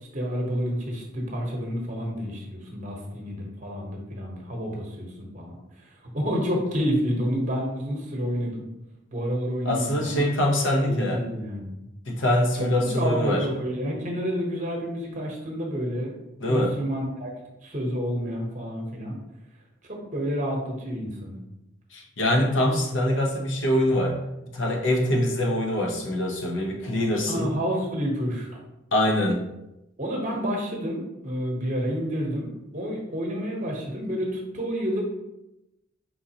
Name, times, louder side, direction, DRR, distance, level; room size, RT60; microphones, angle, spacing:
voice 1, 0.1-5.9 6.1-8.6 9.1-10.3 10.9-11.8 12.6-16.1 16.5-17.3 17.6-19.2 19.8-21.4 27.3-28.6 30.0-35.0, equal, 40° right, 0 dB, 1.0 m, -29 dB
voice 2, 9.6-11.2 12.1-13.5 16.4-16.7 21.9-24.2 24.5-27.5 28.9-29.4, left 1 dB, 65° left, 0 dB, 0.9 m, -24 dB
4.6 x 3.7 x 2.9 m, 0.91 s
head